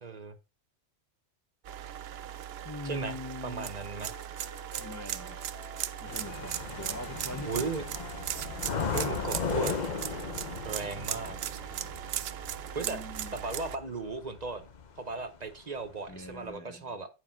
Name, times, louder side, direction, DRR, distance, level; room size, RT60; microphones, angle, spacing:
voice 1, 0.0-0.4 2.8-3.2 3.4-4.1 7.5-7.8 8.9-9.8 10.6-11.4 12.7-13.0 13.3-14.7 15.0-17.1, right 4 dB, 40° right, 0.9 m, -36 dB
sound 1, 1.6-13.8, right 11 dB, 70° right, 0.8 m, -38 dB
voice 2, 2.6-3.7 4.8-5.4 6.0-7.7 10.8-11.1 12.7-13.4 16.1-17.0, left 2 dB, 25° left, 0.4 m, -42 dB
Wind instrument woodwind instrument, 3.9-6.8 7.1-10.3, left 7 dB, 70° left, 1.0 m, -52 dB
sound 2, 6.1-15.4 15.8-16.5, left 6 dB, 45° left, 0.8 m, -37 dB
9.4 x 4.9 x 4.4 m
omnidirectional pair, 1.2 m